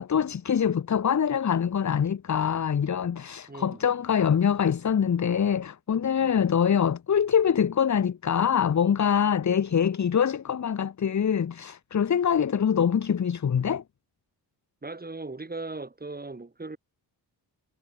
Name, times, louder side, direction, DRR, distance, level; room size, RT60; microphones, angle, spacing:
voice 1, 0.0-13.8, left 8 dB, 40° left, 1.0 m, -24 dB
voice 2, 3.5-3.8 14.8-16.8, right 3 dB, 20° right, 6.2 m, -38 dB
wide cardioid pair, 110°, 43 cm